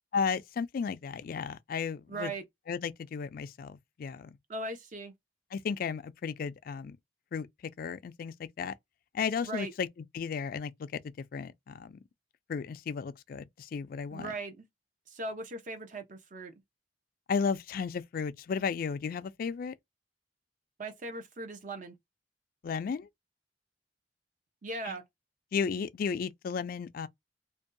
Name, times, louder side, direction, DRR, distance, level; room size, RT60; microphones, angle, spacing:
voice 1, 0.1-2.3 2.7-4.3 5.5-7.0 7.3-7.5 7.8-8.7 9.1-9.9 10.1-11.0 11.3-12.0 12.5-14.3 17.3-19.7 22.6-23.1 24.9-25.0 25.5-27.1, left 6 dB, 55° left, 0.3 m, -34 dB
voice 2, 2.1-2.4 4.5-5.1 9.4-9.7 14.1-14.6 15.1-16.5 20.8-22.0 24.6-25.0, right 2 dB, 45° right, 0.7 m, -39 dB
2.6 x 2.2 x 2.5 m
head